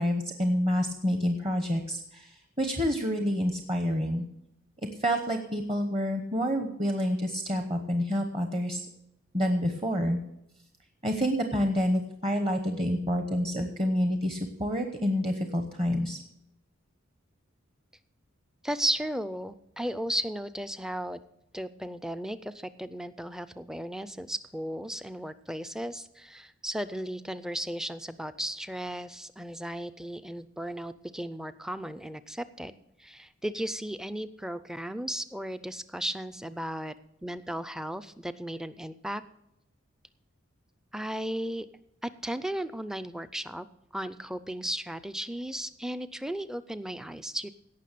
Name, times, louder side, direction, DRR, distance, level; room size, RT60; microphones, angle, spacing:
voice 1, 0.0-4.2 5.0-8.9 9.3-10.2 11.0-16.2, equal, 25° right, 5 dB, 0.9 m, -28 dB
voice 2, 18.6-21.2 21.5-36.9 37.2-39.2 40.9-41.7 42.0-43.7 43.9-47.5, right 1 dB, 5° right, 14 dB, 0.4 m, -35 dB
17.0 x 6.0 x 6.7 m, 0.83 s
head